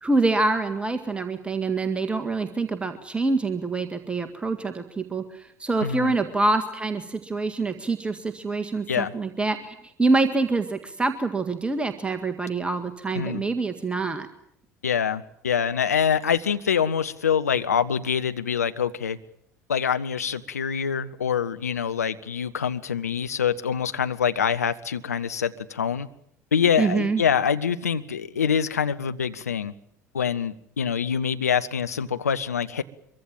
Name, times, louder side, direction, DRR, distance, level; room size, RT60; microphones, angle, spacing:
voice 1, 0.0-14.3 26.8-27.2, right 3 dB, 15° right, 7 dB, 1.8 m, -26 dB
voice 2, 5.8-6.1 8.9-9.1 13.1-13.4 14.8-19.2 19.7-26.1 26.5-29.7 30.1-32.8, left 7 dB, 80° left, 10 dB, 1.0 m, -25 dB
24.5 x 23.5 x 7.5 m, 0.74 s
figure-of-eight pair, 65°, 8 cm